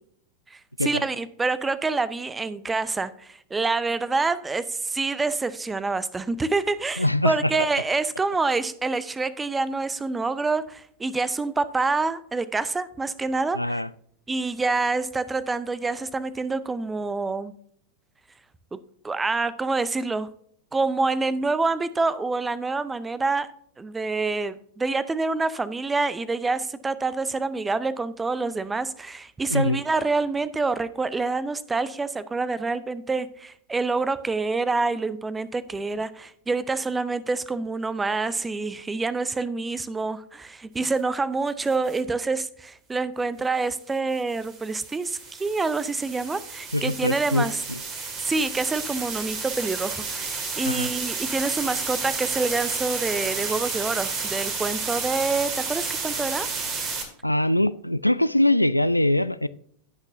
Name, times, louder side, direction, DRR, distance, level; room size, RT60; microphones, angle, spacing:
voice 1, 0.5-13.8 14.3-17.5 18.7-18.8 19.0-20.3 20.7-23.5 23.8-47.6 48.2-56.5, right 3 dB, 10° right, 0.6 m, -27 dB
voice 2, 7.0-7.5 13.5-13.9 29.5-29.8 46.7-47.8 50.6-50.9 57.2-59.5, left 1 dB, 85° left, 0.3 m, -23 dB
sound 1, 41.7-42.0 44.1-57.0, right 4 dB, 35° right, 2.1 m, -31 dB
17.0 x 6.0 x 2.7 m
figure-of-eight pair, 90°, 0 cm